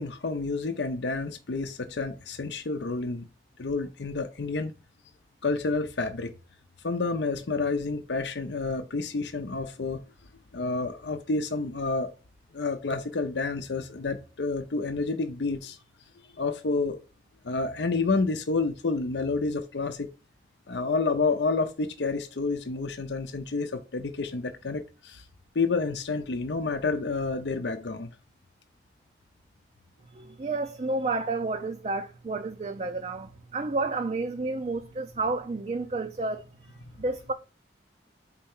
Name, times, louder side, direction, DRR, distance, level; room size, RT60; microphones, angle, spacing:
voice 1, 0.0-3.3 3.6-4.7 5.4-6.3 6.8-10.0 10.5-12.1 12.5-15.8 16.4-17.0 17.4-20.1 20.7-25.2 25.5-28.1 36.9-37.0, left 3 dB, 85° left, 0.7 m, -29 dB
voice 2, 30.1-36.5 37.0-37.3, right 3 dB, 35° right, 0.4 m, -30 dB
4.4 x 4.1 x 5.4 m
head